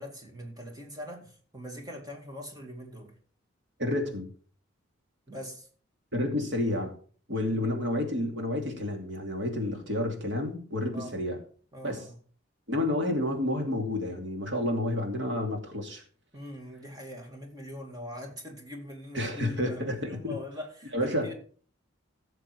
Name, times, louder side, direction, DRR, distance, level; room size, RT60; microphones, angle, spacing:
voice 1, 0.0-3.1 5.3-5.7 7.5-7.7 10.9-11.2 11.7-12.2 16.3-21.3, left 1 dB, 20° right, 2.3 m, -42 dB
voice 2, 3.8-4.3 6.1-6.9 7.3-11.4 11.8-12.1 12.7-16.0 19.1-20.3 20.9-21.3, left 1 dB, 60° right, 2.7 m, -30 dB
16.0 x 6.7 x 4.7 m
head